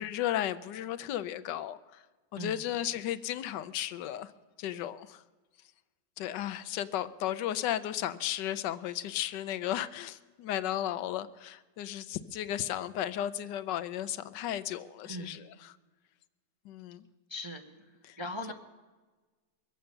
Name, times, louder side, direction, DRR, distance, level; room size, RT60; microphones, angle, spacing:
voice 1, 0.0-2.0 2.3-4.3 4.6-5.2 6.2-15.8 16.6-17.0 18.0-18.2, left 12 dB, 90° left, 14 dB, 1.3 m, -34 dB
voice 2, 15.0-15.4 17.3-17.6 18.2-18.5, left 1 dB, 35° right, 4 dB, 0.4 m, -39 dB
23.0 x 8.0 x 6.5 m, 1.3 s
omnidirectional pair, 1.8 m